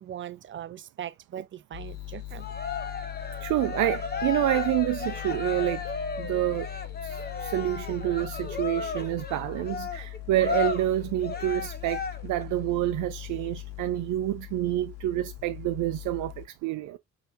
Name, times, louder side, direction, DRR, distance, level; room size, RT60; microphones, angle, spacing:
voice 1, 0.0-2.5, right 10 dB, 40° right, 0.5 m, -40 dB
sound 1, 1.7-16.5, left 15 dB, 55° left, 0.5 m, -40 dB
Cheering, 2.4-12.4, left 5 dB, 30° left, 1.1 m, -34 dB
voice 2, 3.4-5.8 6.2-6.7 7.0-17.0, right 15 dB, 90° right, 0.5 m, -28 dB
5.6 x 2.8 x 2.6 m
cardioid pair, 90°, 30 cm